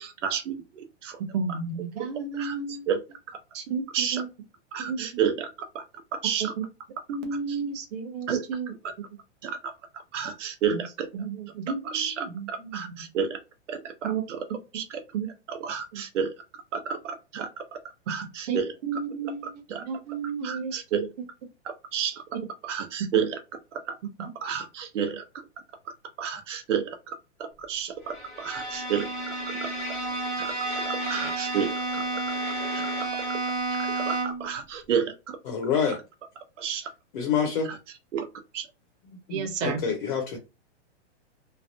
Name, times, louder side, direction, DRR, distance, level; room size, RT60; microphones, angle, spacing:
voice 1, 0.0-1.2 1.5-1.6 2.0-3.0 3.3-3.4 3.9-4.2 4.7-5.5 5.7-5.8 6.1-6.5 7.5-7.6 8.3-8.4 9.4-11.1 11.8-13.4 13.7-14.4 14.7-15.0 15.5-16.4 16.7-17.8 18.1-18.7 19.4-19.8 20.4-21.1 21.6-22.2 22.6-23.4 23.7-25.2 26.2-29.3 29.6-30.0 30.4-32.4 32.7-33.4 33.7-35.4 36.6-36.9 37.6-37.8 38.1-38.3 38.5-38.7, right 7 dB, 80° right, 0.8 m, -31 dB
voice 2, 1.3-2.9 3.5-3.8 4.1-4.2 4.8-5.1 7.1-8.7 10.7-10.8 11.1-12.8 14.0-14.2 15.1-15.3 18.5-19.5 19.9-20.8 39.3-39.8, right 5 dB, 35° right, 0.8 m, -32 dB
Bowed string instrument, 28.1-34.5, right 2 dB, ahead, 0.3 m, -31 dB
voice 3, 35.5-36.0 37.1-37.7 39.3-40.4, left 7 dB, 45° left, 0.8 m, -27 dB
3.2 x 2.1 x 2.7 m
hypercardioid pair, 160°, 36 cm